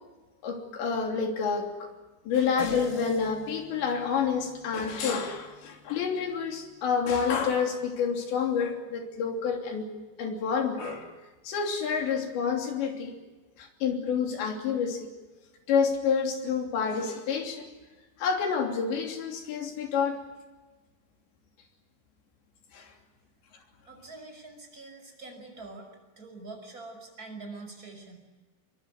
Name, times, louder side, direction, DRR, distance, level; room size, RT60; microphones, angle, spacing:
voice 1, 0.4-1.9 2.3-9.9 10.2-11.1 11.5-13.2 13.6-15.1 15.7-17.7 18.2-20.2 22.7-22.9, left 6 dB, 75° left, 3 dB, 5.3 m, -28 dB
sound 1, 2.6-7.3, left 3 dB, 35° left, 3.4 m, -45 dB
voice 2, 23.9-28.2, right 3 dB, 20° right, 4 dB, 5.8 m, -45 dB
23.5 x 23.0 x 9.4 m, 1.2 s
omnidirectional pair, 5.1 m